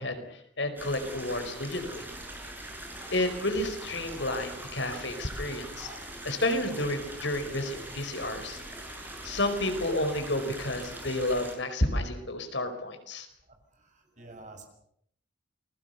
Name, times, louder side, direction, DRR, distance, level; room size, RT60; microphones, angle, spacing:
voice 1, 0.0-2.1 3.1-5.9 6.2-8.6 9.2-13.3, left 1 dB, 75° left, 7 dB, 4.7 m, -31 dB
sound 1, 0.8-11.6, right 1 dB, 10° right, 6.3 m, -42 dB
voice 2, 13.8-14.7, right 2 dB, 40° right, 5 dB, 6.5 m, -49 dB
29.0 x 21.5 x 6.8 m, 0.70 s
head